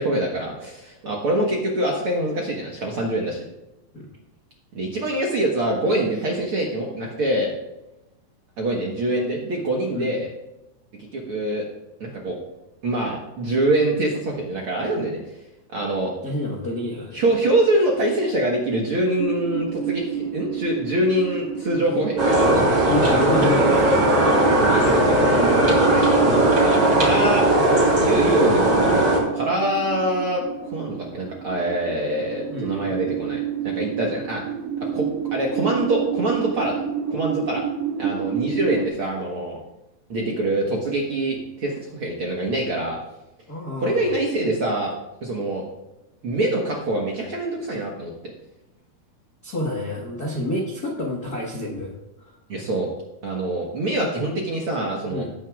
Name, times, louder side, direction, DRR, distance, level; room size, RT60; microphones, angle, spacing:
voice 1, 0.0-3.5 4.7-7.5 8.6-10.3 11.1-11.6 12.0-12.4 12.8-15.2 15.7-16.1 17.1-26.2 26.6-27.5 28.0-34.4 34.9-36.8 37.1-37.6 38.0-39.6 40.1-43.0 43.8-44.9 45.2-45.6 46.2-48.1 52.5-52.9 53.2-55.3, right 1 dB, 55° right, -2 dB, 1.5 m, -25 dB
voice 2, 16.2-17.2 21.7-22.0 22.8-24.1 32.5-32.9 43.5-44.1 49.4-51.9 52.2-52.3 55.1-55.3, left 1 dB, 55° left, -3 dB, 1.0 m, -28 dB
sound 1, 19.2-38.9, right 8 dB, 75° right, 2.9 m, -29 dB
sound 2, 22.2-29.2, right 1 dB, 35° right, 3.7 m, -18 dB
18.0 x 9.1 x 2.4 m, 0.92 s
omnidirectional pair, 4.3 m